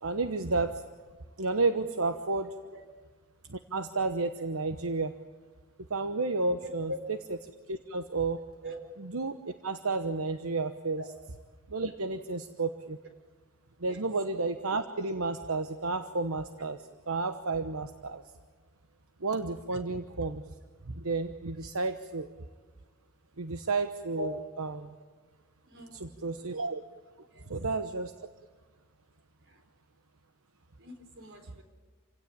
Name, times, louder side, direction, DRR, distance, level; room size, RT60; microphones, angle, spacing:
voice 1, 0.0-0.8 1.4-2.5 3.5-5.1 5.9-6.9 7.7-8.4 9.0-11.0 11.7-13.0 13.8-18.2 19.2-20.4 20.9-22.3 23.4-24.9 25.9-26.8 27.5-28.3, right 3 dB, 80° right, 8 dB, 1.1 m, -31 dB
voice 2, 6.6-7.0 8.6-8.8 11.0-11.1 13.8-14.0 24.1-24.3 25.7-26.1 27.3-27.5 29.5-29.6 30.8-31.6, left 1 dB, 55° right, 5 dB, 4.4 m, -41 dB
28.0 x 17.0 x 8.8 m, 1.5 s
head